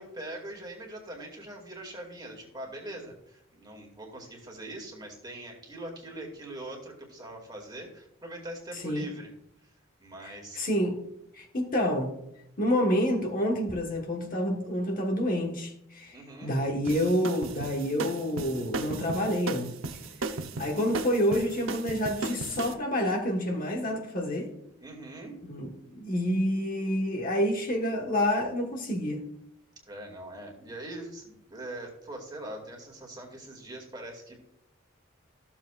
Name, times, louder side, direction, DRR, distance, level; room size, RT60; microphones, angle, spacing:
voice 1, 0.0-9.3 9.6-9.7 10.0-10.6 16.1-16.6 24.8-25.4 29.9-34.4, right 1 dB, 20° right, 2.2 m, -42 dB
voice 2, 10.5-11.0 11.3-12.2 12.6-19.7 20.6-24.5 25.4-29.2, equal, 40° left, 1.3 m, -28 dB
sound 1, 16.8-22.7, right 3 dB, 80° right, 0.8 m, -35 dB
14.5 x 7.2 x 2.4 m
head